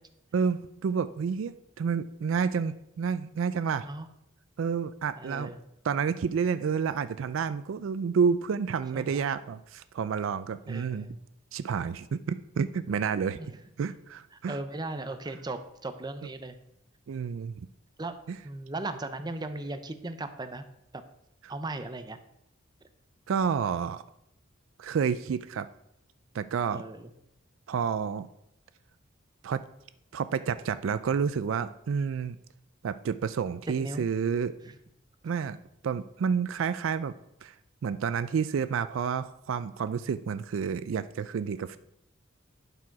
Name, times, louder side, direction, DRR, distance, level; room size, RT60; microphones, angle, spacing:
voice 1, 0.3-3.9 4.6-5.5 5.8-11.1 11.5-13.4 13.8-14.6 17.1-17.7 18.3-18.4 21.4-21.5 23.3-24.0 24.8-25.7 26.3-26.8 27.7-28.3 29.4-29.6 30.1-32.4 32.8-34.5 35.2-35.6 35.8-37.1 37.4-37.5 37.8-41.8, right 6 dB, 70° right, 13 dB, 0.4 m, -29 dB
voice 2, 5.2-5.6 8.9-9.3 10.7-11.2 13.4-13.6 14.5-16.6 18.0-18.2 18.4-20.6 20.9-21.0 21.5-22.2 26.7-27.1 33.8-34.1 34.6-34.7, right 2 dB, 20° right, 9 dB, 0.6 m, -37 dB
11.5 x 4.9 x 4.7 m, 0.80 s
head